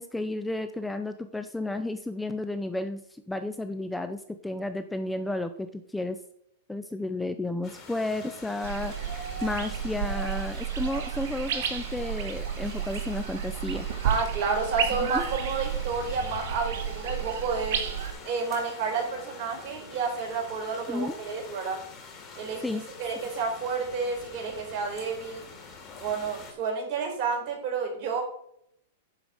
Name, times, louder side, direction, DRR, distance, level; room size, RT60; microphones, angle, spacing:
voice 1, 0.0-3.0 3.3-6.2 6.7-13.9 15.0-15.3 20.9-21.1 22.6-22.8, left 2 dB, 5° left, 9 dB, 0.6 m, -32 dB
sound 1, 7.6-26.5, left 4 dB, 30° left, 3.5 m, -46 dB
sound 2, 8.6-18.1, right 8 dB, 65° right, 1.6 m, -32 dB
voice 2, 14.0-17.8 18.2-21.8 22.3-25.4 26.0-28.2, right 5 dB, 50° right, 0 dB, 4.4 m, -30 dB
10.0 x 5.1 x 6.3 m, 0.71 s
hypercardioid pair, 125°, 0 cm